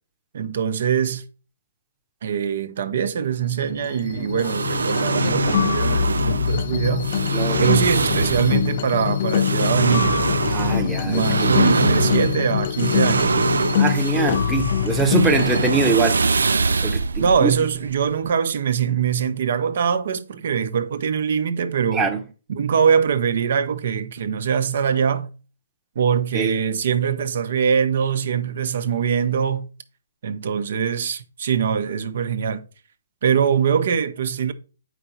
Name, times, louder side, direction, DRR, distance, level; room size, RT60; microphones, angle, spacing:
voice 1, 0.3-1.2 2.2-7.1 7.6-10.2 11.0-13.4 17.2-22.1 22.5-25.3 26.0-29.7 30.2-32.6 33.2-34.5, right 7 dB, 60° right, 0.9 m, -22 dB
sound 1, 3.5-15.7, left 9 dB, 50° left, 0.5 m, -23 dB
sound 2, 4.4-18.3, right 4 dB, 85° right, 0.4 m, -24 dB
voice 2, 7.3-7.7 10.5-11.6 13.8-16.3 16.8-17.5 21.9-22.2 26.3-26.5, right 4 dB, 10° right, 0.9 m, -23 dB
7.8 x 5.1 x 4.2 m
hypercardioid pair, 145°, 0 cm